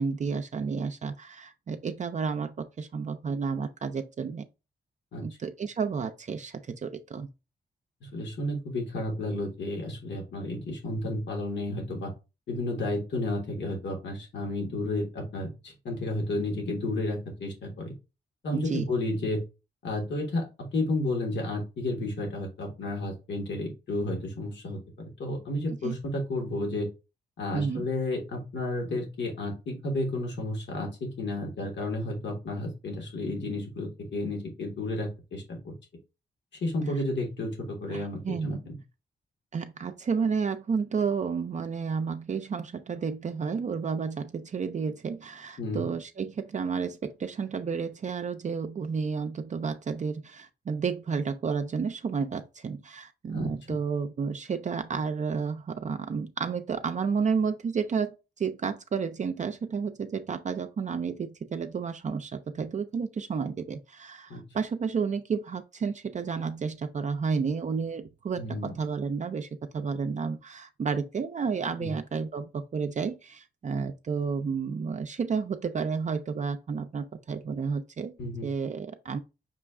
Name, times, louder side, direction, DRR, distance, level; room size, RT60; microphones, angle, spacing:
voice 1, 0.0-4.5 5.2-7.3 18.5-18.9 25.8-26.0 27.5-27.9 37.9-38.6 39.5-78.1 78.4-79.2, right 5 dB, 40° right, 0.4 m, -31 dB
voice 2, 8.0-12.1 12.5-17.9 18.4-19.4 19.8-26.9 27.4-35.7 36.6-38.8 45.6-45.8 53.3-53.5 64.3-64.4 68.4-68.7 71.8-71.9 78.2-78.5, left 2 dB, 75° left, 1.4 m, -32 dB
6.0 x 2.3 x 3.5 m
cardioid pair, 100°, 18 cm